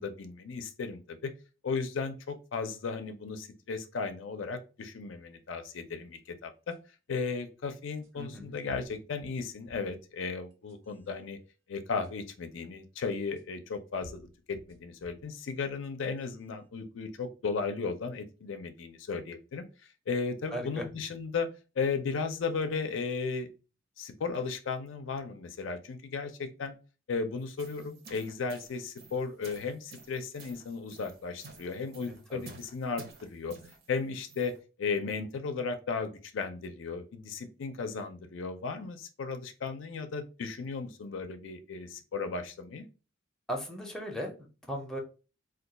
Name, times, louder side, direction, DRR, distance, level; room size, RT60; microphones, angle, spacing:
voice 1, 0.0-1.3 1.6-6.7 7.1-11.4 11.7-19.6 20.1-21.5 21.8-23.5 24.0-26.8 27.1-33.6 33.9-42.8, left 4 dB, 75° left, 7 dB, 0.4 m, -35 dB
sound 1, 6.7-6.8 8.0-8.1 8.7-10.0 10.5-11.1 12.0-12.1 13.4-13.5 14.0-15.3 15.8-16.4, left 1 dB, 90° right, 0.6 m, -53 dB
voice 2, 8.2-8.6 20.5-20.9 32.0-32.5 43.5-45.0, equal, 5° left, -1 dB, 0.5 m, -38 dB
sound 2, 27.4-34.6, right 4 dB, 55° right, 0.7 m, -52 dB
2.3 x 2.2 x 3.8 m, 0.33 s
head